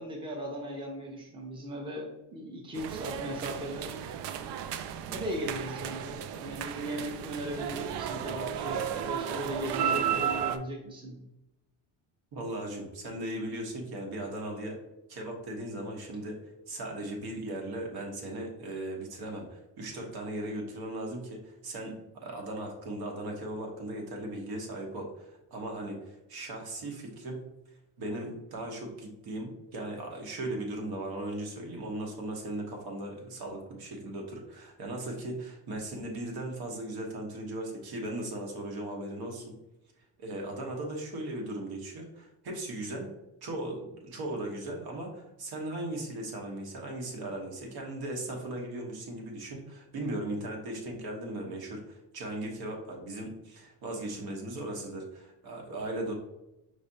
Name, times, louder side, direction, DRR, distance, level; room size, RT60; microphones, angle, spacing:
voice 1, 0.0-3.9 5.1-11.2, equal, 10° right, -1 dB, 0.7 m, -37 dB
sound 1, 2.7-10.6, right 9 dB, 80° right, 0.5 m, -34 dB
voice 2, 12.3-14.8 15.1-27.5 28.0-39.5 40.2-43.1 43.4-56.1, right 1 dB, 65° right, 1 dB, 1.1 m, -38 dB
5.0 x 3.2 x 2.7 m, 0.90 s
cardioid pair, 145°, 41 cm